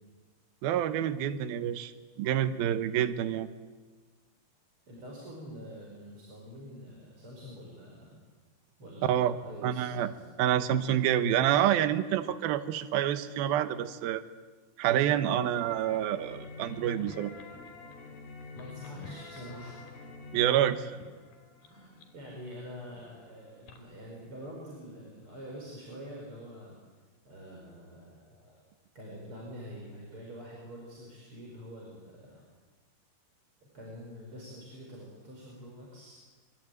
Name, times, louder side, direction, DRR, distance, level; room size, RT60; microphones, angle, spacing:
voice 1, 0.6-1.9 2.2-3.5 9.0-9.3 9.6-10.1 10.4-14.2 14.8-17.3 20.3-21.0, right 11 dB, 70° right, 11 dB, 2.7 m, -27 dB
voice 2, 4.9-8.1 8.8-10.2 18.5-19.8 21.6-26.8 27.2-28.6 28.9-32.4 33.7-36.2, equal, 30° right, -2 dB, 5.7 m, -46 dB
sound 1, 15.6-24.5, left 4 dB, 60° left, 4.8 m, -48 dB
24.0 x 23.5 x 9.3 m, 1.4 s
omnidirectional pair, 4.9 m